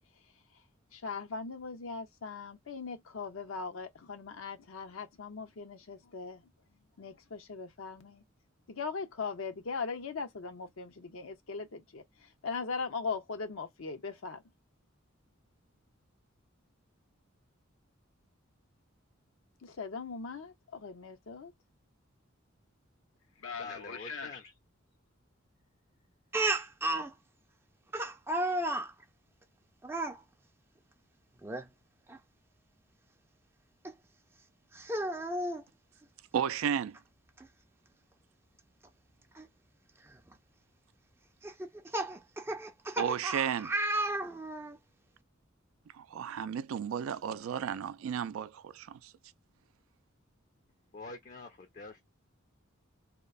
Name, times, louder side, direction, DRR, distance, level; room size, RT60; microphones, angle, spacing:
voice 1, 0.9-6.5 7.0-8.2 8.7-14.4 19.6-21.5 23.4-24.4, left 4 dB, 80° left, 0.7 m, -40 dB
voice 2, 23.5-24.5 50.9-52.0, left 3 dB, 40° left, 0.5 m, -46 dB
Speech, 26.3-27.1 27.9-28.9 29.8-30.2 31.4-31.7 32.1-32.2 33.8-33.9 34.7-35.6 37.0-37.1 37.4-37.5 39.4-39.5 40.1-40.3 41.4-44.8, right 1 dB, 10° right, 0.4 m, -33 dB
voice 3, 36.3-37.0 43.0-43.7 46.0-49.0, right 8 dB, 85° right, 0.3 m, -33 dB
2.9 x 2.0 x 2.3 m
head